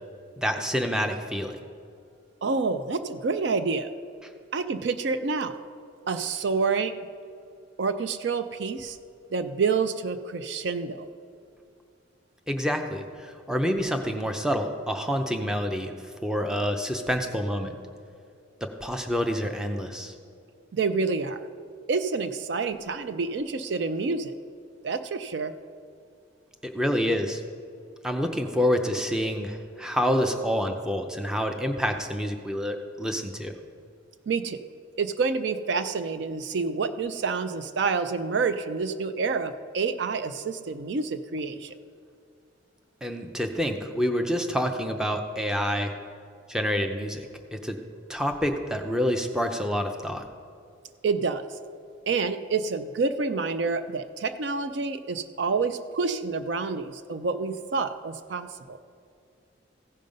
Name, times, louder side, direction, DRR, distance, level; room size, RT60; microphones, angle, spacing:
voice 1, 0.4-1.6 12.5-15.9 16.2-17.7 18.6-20.1 26.6-27.4 28.0-33.5 43.0-45.9 46.5-47.8 48.1-50.2, equal, 5° right, 5 dB, 0.6 m, -27 dB
voice 2, 2.4-3.9 4.5-5.6 6.1-6.9 7.8-9.0 9.3-11.1 20.7-21.4 21.9-24.3 24.8-25.5 34.3-34.6 35.0-41.7 51.0-51.5 52.1-58.8, right 4 dB, 60° right, 10 dB, 0.4 m, -28 dB
15.5 x 5.3 x 5.3 m, 2.4 s
head